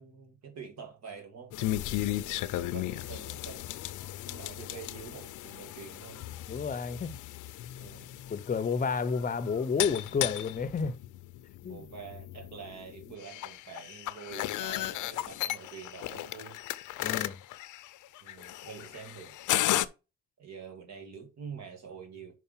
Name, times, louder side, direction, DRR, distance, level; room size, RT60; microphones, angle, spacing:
voice 1, 0.0-3.7 4.3-6.3 7.8-8.1 11.7-16.6 18.2-19.4 20.4-22.4, right 6 dB, 60° right, 1.9 m, -46 dB
sound 1, 1.5-19.9, left 14 dB, 80° left, 0.6 m, -35 dB
voice 2, 6.5-7.1 8.3-11.0 11.6-11.9 17.0-17.4, left 5 dB, 30° left, 0.7 m, -30 dB
5.6 x 4.8 x 5.5 m
cardioid pair, 90°, 30 cm